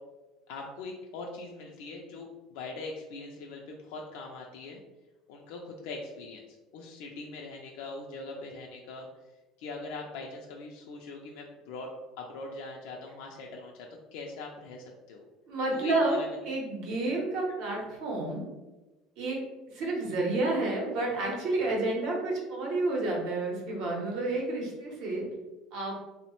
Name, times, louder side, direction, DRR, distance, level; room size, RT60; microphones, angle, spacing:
voice 1, 0.5-4.8 5.3-9.1 9.6-11.9 12.2-15.2 15.7-16.4, left 3 dB, 75° left, 0 dB, 0.3 m, -42 dB
voice 2, 15.5-18.5 19.2-19.4 19.7-25.2 25.7-26.0, right 2 dB, 60° right, -1 dB, 0.7 m, -30 dB
3.0 x 2.0 x 2.9 m, 1.1 s
cardioid pair, 175°, 0 cm